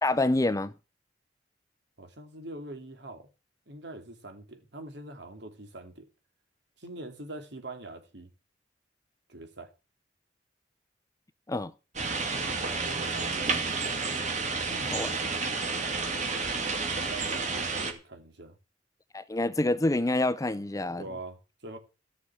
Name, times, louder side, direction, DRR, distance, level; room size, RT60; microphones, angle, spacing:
voice 1, 0.0-0.7 11.5-11.7 14.9-15.1 19.1-21.0, left 2 dB, 20° left, 0.6 m, -27 dB
voice 2, 2.0-3.3 3.7-6.1 6.8-8.3 9.3-9.7 12.7-13.5 14.7-15.0 16.9-18.6 20.9-21.8, right 2 dB, 65° right, 2.8 m, -43 dB
sound 1, 12.0-17.9, right 4 dB, 40° right, 2.4 m, -30 dB
14.5 x 6.3 x 8.6 m
head